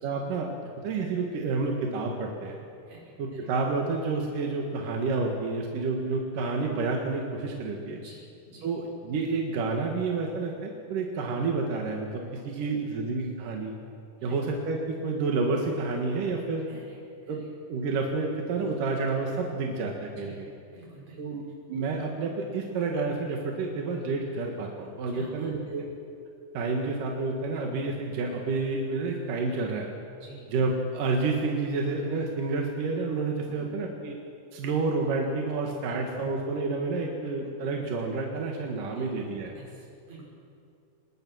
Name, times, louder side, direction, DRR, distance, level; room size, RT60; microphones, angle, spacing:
voice 1, 0.0-2.6 3.2-8.0 8.6-13.7 14.2-16.7 17.3-17.4 17.7-20.5 21.2-21.4 21.7-25.9 26.5-29.9 30.5-34.2 34.5-39.6, right 3 dB, 60° right, 1 dB, 2.4 m, -29 dB
voice 2, 2.9-3.5 8.0-8.8 12.3-12.8 14.2-14.4 16.7-17.5 20.2-20.4 20.7-21.2 25.1-25.7 30.2-30.5 33.5-33.8 35.9-36.0 39.0-39.1 39.5-40.3, right 2 dB, 35° right, -3 dB, 7.3 m, -50 dB
26.0 x 21.5 x 6.3 m, 2.4 s
omnidirectional pair, 6.0 m